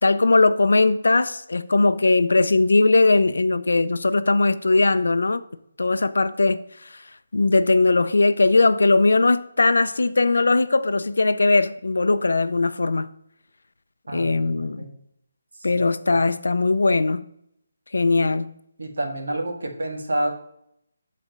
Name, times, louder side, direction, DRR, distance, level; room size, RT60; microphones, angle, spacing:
voice 1, 0.0-5.4 5.8-6.9 7.3-13.1 14.1-14.9 15.6-17.2 17.9-18.5, left 3 dB, 85° left, 0.4 m, -19 dB
voice 2, 14.1-14.9 18.2-18.3 18.8-20.3, right 1 dB, 70° right, 1.6 m, -29 dB
7.1 x 4.2 x 5.2 m
hypercardioid pair, 180°, 0 cm